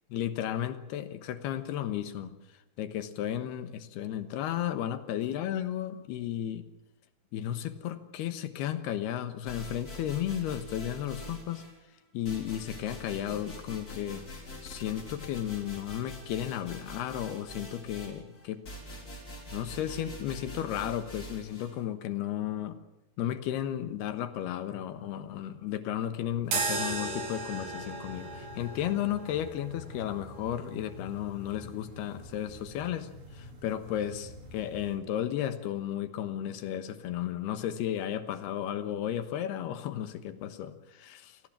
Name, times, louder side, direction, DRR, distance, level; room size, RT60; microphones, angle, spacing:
voice 1, 0.1-2.4 2.8-6.7 7.3-11.6 12.1-14.3 14.6-18.6 19.5-22.8 23.2-41.4, left 11 dB, 85° left, 11 dB, 3.3 m, -34 dB
sound 1, 9.5-11.8 12.2-21.7, equal, 20° left, 4.1 m, -44 dB
sound 2, 26.4-35.0, right 3 dB, 85° right, 6.5 m, -38 dB
26.5 x 18.5 x 7.5 m, 0.97 s
omnidirectional pair, 4.6 m